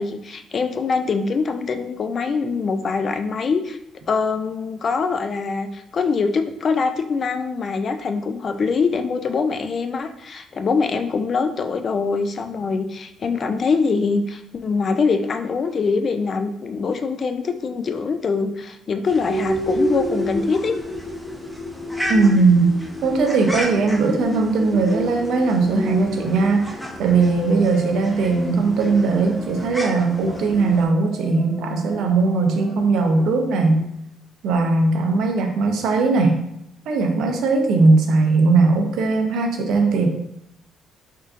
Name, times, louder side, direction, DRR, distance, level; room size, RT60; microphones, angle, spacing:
voice 1, 0.0-3.8 4.1-20.7, left 4 dB, 50° left, 7 dB, 0.3 m, -23 dB
sound 1, 19.0-30.9, equal, ahead, 0.6 m, -35 dB
sound 2, 19.3-33.5, equal, 80° left, 1.3 m, -31 dB
voice 2, 22.1-22.7 23.0-33.9 34.4-36.4 36.9-40.1, right 3 dB, 80° right, 3 dB, 0.5 m, -19 dB
3.5 x 2.6 x 2.5 m, 0.80 s
cardioid pair, 90°, 0 cm